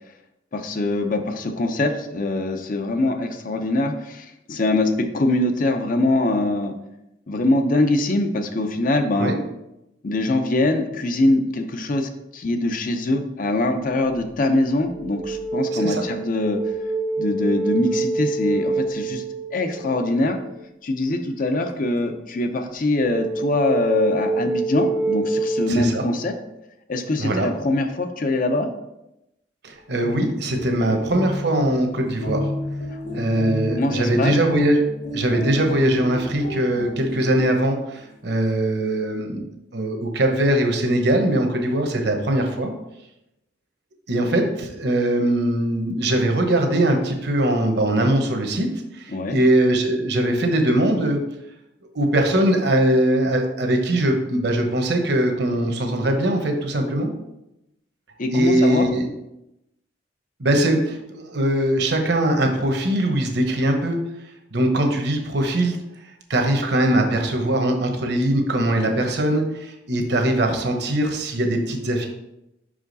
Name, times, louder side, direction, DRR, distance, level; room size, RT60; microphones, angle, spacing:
voice 1, 0.5-6.7 7.3-9.3 10.0-16.7 17.2-19.2 19.5-20.4 20.8-26.3 26.9-28.7 32.9-33.0 33.7-34.4 49.1-49.4 58.2-58.9, left 2 dB, 45° left, 7 dB, 0.6 m, -23 dB
sound 1, 13.9-14.2 14.7-20.5 23.0-25.7, right 3 dB, 5° right, 0.5 m, -26 dB
voice 2, 25.7-26.1 27.2-27.5 29.6-32.5 33.1-34.8 35.1-39.5 39.7-42.7 44.1-48.7 48.9-51.2 51.9-57.1 58.3-59.1 60.4-64.0 64.5-65.8 66.3-72.1, right 1 dB, 65° right, 4 dB, 1.0 m, -21 dB
sound 2, 29.8-37.5, left 1 dB, 80° left, 2.1 m, -31 dB
5.6 x 4.9 x 4.0 m, 0.89 s
head